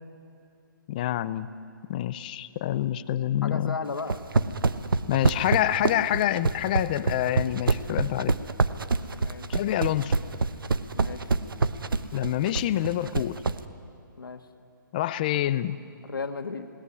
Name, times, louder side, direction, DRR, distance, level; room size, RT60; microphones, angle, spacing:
voice 1, 0.9-1.5 1.9-3.8 5.1-8.3 9.5-10.1 12.1-13.4 14.9-15.8, left 12 dB, 25° left, 16 dB, 0.5 m, -27 dB
voice 2, 3.4-4.2 9.2-9.6 10.9-11.3 14.2-14.4 16.0-16.7, left 4 dB, 80° left, 6 dB, 2.0 m, -35 dB
sound 1, 4.0-13.6, right 4 dB, 85° right, 1.1 m, -25 dB
21.5 x 18.5 x 9.7 m, 2.4 s
hypercardioid pair, 160°, 11 cm